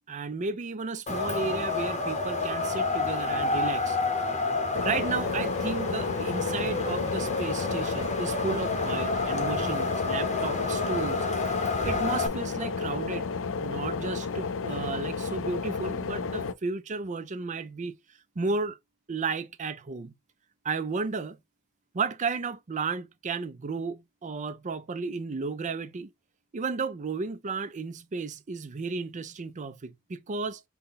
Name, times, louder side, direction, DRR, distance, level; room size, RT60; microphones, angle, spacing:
voice 1, 0.1-4.0 4.8-11.3 11.8-13.3 13.6-17.9 18.4-18.8 19.1-20.1 20.6-21.4 21.9-26.1 26.5-30.6, right 4 dB, 35° right, 0.5 m, -33 dB
Wind, 1.1-12.3, left 3 dB, 35° left, 0.9 m, -30 dB
sound 1, 4.7-16.5, left 5 dB, 60° left, 0.5 m, -32 dB
5.6 x 2.2 x 3.8 m
head